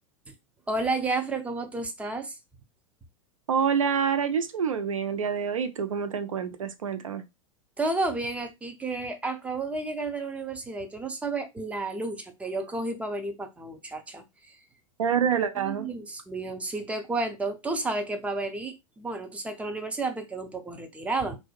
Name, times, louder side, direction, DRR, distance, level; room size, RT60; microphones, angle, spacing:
voice 1, 0.7-2.4 7.8-14.2 15.6-21.4, right 3 dB, 10° right, 0.4 m, -31 dB
voice 2, 3.5-7.2 15.0-15.9, right 7 dB, 70° right, 0.4 m, -27 dB
2.5 x 2.1 x 2.4 m
figure-of-eight pair, 90°, 17 cm